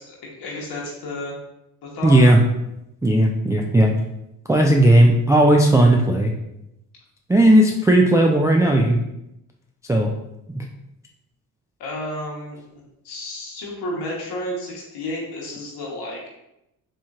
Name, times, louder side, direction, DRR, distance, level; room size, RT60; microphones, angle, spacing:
voice 1, 0.0-1.4 1.8-2.2 11.8-16.3, left 1 dB, 70° left, -3 dB, 1.1 m, -32 dB
voice 2, 2.0-2.4 3.0-3.9 4.5-6.3 7.3-9.0 9.9-10.1 10.6-10.7, right 1 dB, 10° right, 0 dB, 0.3 m, -15 dB
4.2 x 3.0 x 2.4 m, 0.86 s
supercardioid pair, 60°, 41 cm